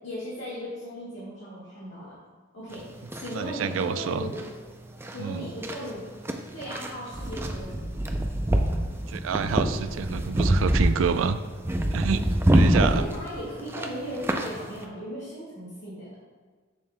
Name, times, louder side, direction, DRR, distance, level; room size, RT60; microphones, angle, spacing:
voice 1, 0.0-2.2 2.5-2.8 3.1-4.4 5.1-6.1 6.5-8.0 12.8-16.1, equal, 65° left, -9 dB, 1.7 m, -37 dB
sound 1, 2.7-14.8, right 1 dB, 10° right, 0.4 m, -26 dB
voice 2, 3.3-4.3 5.2-5.4 9.1-11.4 11.9-12.2 12.5-13.0, right 6 dB, 80° right, 12 dB, 0.3 m, -27 dB
7.1 x 6.8 x 2.2 m, 1.5 s
head